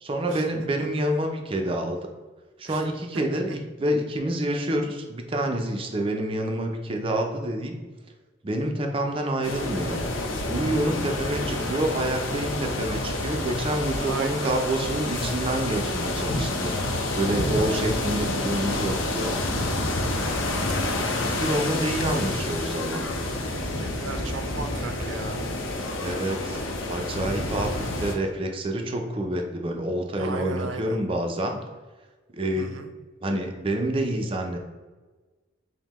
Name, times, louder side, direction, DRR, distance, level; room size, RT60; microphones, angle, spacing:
voice 1, 0.0-2.0 2.6-7.8 8.4-10.0 10.5-16.7 17.2-19.3 21.1-23.0 26.0-26.6 26.9-31.6 32.3-32.7 33.2-34.6, right 1 dB, 30° right, 3 dB, 0.5 m, -27 dB
sound 1, 9.4-28.1, left 2 dB, 90° left, 0.6 m, -28 dB
voice 2, 14.0-14.8 23.8-25.5 30.1-31.0 32.6-32.9, right 4 dB, 80° right, 7 dB, 0.5 m, -36 dB
5.4 x 2.1 x 3.0 m, 1.3 s
head